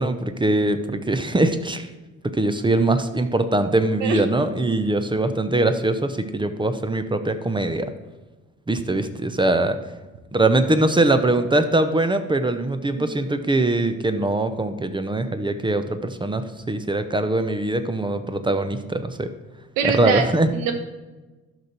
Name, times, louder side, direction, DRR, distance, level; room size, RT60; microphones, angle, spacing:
voice 1, 0.0-1.9 2.2-7.9 8.7-9.8 10.3-19.3 19.8-20.5, right 2 dB, 10° right, 9 dB, 0.8 m, -22 dB
voice 2, 19.8-20.2 20.5-20.7, right 6 dB, 65° right, 6 dB, 1.2 m, -23 dB
12.0 x 6.5 x 4.4 m, 1.2 s
figure-of-eight pair, 50°, 42 cm